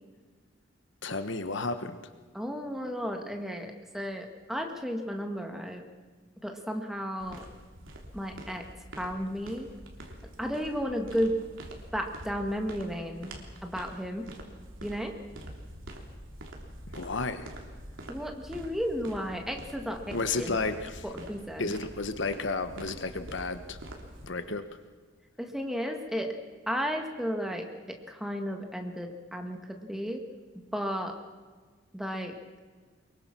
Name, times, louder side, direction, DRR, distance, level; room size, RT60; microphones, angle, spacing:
voice 1, 1.0-2.0 16.9-17.5 20.1-21.0 21.6-23.8 24.2-24.7, left 3 dB, 65° left, 10 dB, 1.2 m, -32 dB
voice 2, 2.3-5.9 6.4-7.5 8.1-8.7 9.0-9.7 10.4-11.4 11.9-13.3 13.6-14.3 14.8-15.2 18.1-20.6 21.0-21.7 25.4-26.4 26.7-30.2 30.7-31.1 31.9-32.4, equal, ahead, 3 dB, 1.8 m, -33 dB
sound 1, 7.2-24.3, right 1 dB, 75° right, 3.4 m, -46 dB
23.5 x 22.5 x 6.1 m, 1.5 s
head